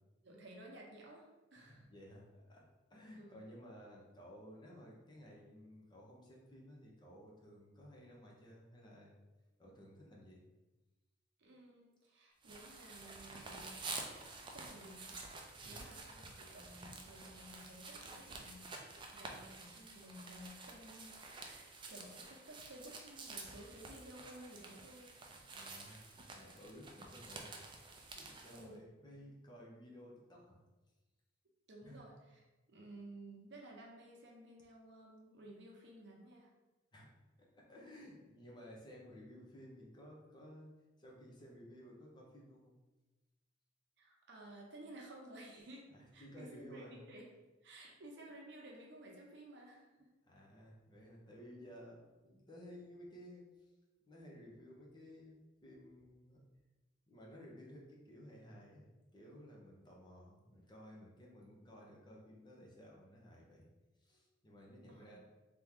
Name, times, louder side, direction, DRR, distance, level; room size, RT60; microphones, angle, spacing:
voice 1, 0.2-1.9 3.1-3.4 11.4-13.9 14.1-15.3 15.6-18.7 19.1-25.1 28.5-28.9 31.7-36.5 44.0-47.3 47.6-50.1 64.9-65.2, right 1 dB, 65° right, -1 dB, 0.8 m, -55 dB
voice 2, 1.6-2.6 2.9-9.1 9.6-10.4 15.6-16.0 19.3-19.5 25.5-26.0 26.3-27.5 28.1-30.6 31.8-32.0 36.9-37.1 37.4-40.7 41.0-42.7 45.9-47.0 50.2-53.7 54.1-56.4 57.1-63.7 64.0-65.2, equal, 25° left, -2 dB, 0.7 m, -56 dB
sound 1, 12.4-28.7, right 3 dB, 25° right, 0.4 m, -50 dB
3.4 x 2.9 x 3.6 m, 1.1 s
head